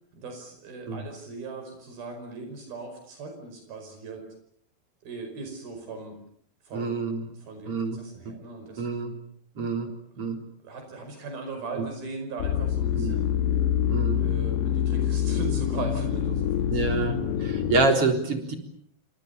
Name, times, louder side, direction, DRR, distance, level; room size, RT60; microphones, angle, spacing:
voice 1, 0.1-4.2 5.0-6.2 6.7-9.1 9.8-10.3 10.6-13.5 14.1-16.8 17.3-17.6, right 3 dB, 80° right, 5 dB, 7.1 m, -39 dB
voice 2, 6.7-7.3 7.7-8.0 8.2-8.4 8.8-9.1 9.6-9.9 10.2-10.4 11.8-11.9 13.0-13.2 13.9-14.2 16.7-18.5, right 3 dB, 40° right, 4 dB, 4.6 m, -27 dB
sound 1, 12.4-17.9, left 10 dB, 65° left, 2.7 m, -26 dB
29.0 x 26.0 x 7.0 m, 0.66 s
omnidirectional pair, 4.2 m